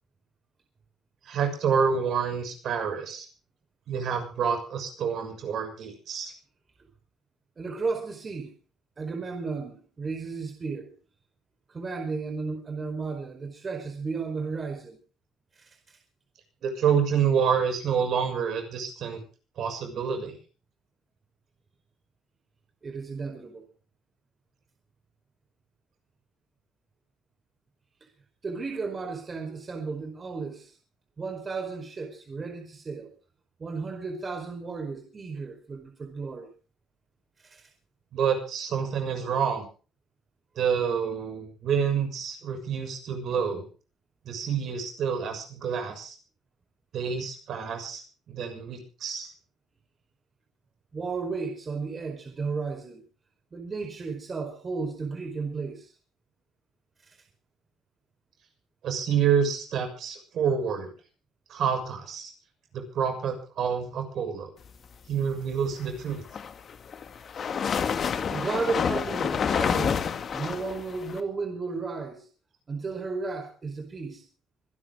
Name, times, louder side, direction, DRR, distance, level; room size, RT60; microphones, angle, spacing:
voice 1, 1.2-3.3 3.9-6.3 16.6-19.2 19.6-20.4 38.1-39.7 40.5-43.6 44.2-46.1 46.9-48.0 48.3-49.3 58.8-60.9 61.5-62.3 62.7-64.5 65.1-66.2, right 7 dB, 65° right, 6.7 m, -28 dB
voice 2, 7.6-8.5 9.0-10.9 11.7-15.0 15.5-16.0 22.8-23.6 28.0-28.1 28.4-30.8 31.2-33.1 33.6-36.5 37.4-37.7 50.9-53.0 53.5-55.9 57.0-57.2 68.3-70.1 70.3-72.3 72.7-74.2, right 4 dB, 40° right, 4.6 m, -34 dB
sound 1, 66.1-71.2, left 7 dB, 55° left, 2.1 m, -28 dB
25.5 x 11.5 x 3.8 m
supercardioid pair, 60°, 0 cm